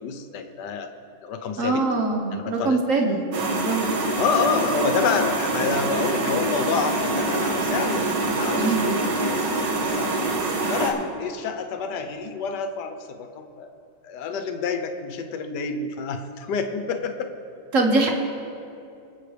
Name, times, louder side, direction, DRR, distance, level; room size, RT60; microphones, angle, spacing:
voice 1, 0.0-0.9 1.2-1.9 2.3-2.8 4.2-10.3 10.7-13.7 14.0-17.3, left 5 dB, 65° left, 7 dB, 1.4 m, -28 dB
voice 2, 1.6-3.2 3.5-3.9 8.5-9.0 17.7-18.1, right 3 dB, 45° right, 2 dB, 1.5 m, -23 dB
sound 1, 3.3-10.9, right 2 dB, 65° right, 2.0 m, -25 dB
23.5 x 8.2 x 3.4 m, 2.6 s
omnidirectional pair, 2.2 m